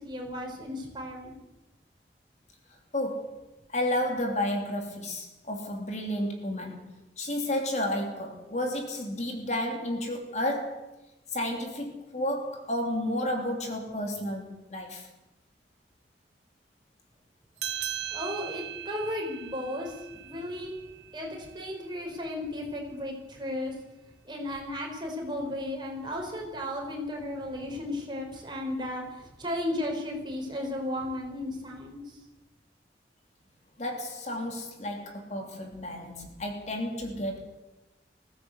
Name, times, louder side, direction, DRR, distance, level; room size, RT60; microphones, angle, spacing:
voice 1, 0.0-1.3 18.1-20.8 21.1-23.8 24.2-32.2, left 1 dB, 25° right, 5.3 m, -35 dB
voice 2, 2.9-3.4 3.7-6.9 7.2-10.9 11.3-15.1 33.8-37.4, left 1 dB, 40° left, 3.0 m, -32 dB
sound 1, 17.6-22.5, right 10 dB, 80° right, 1.2 m, -40 dB
20.0 x 16.0 x 8.1 m
head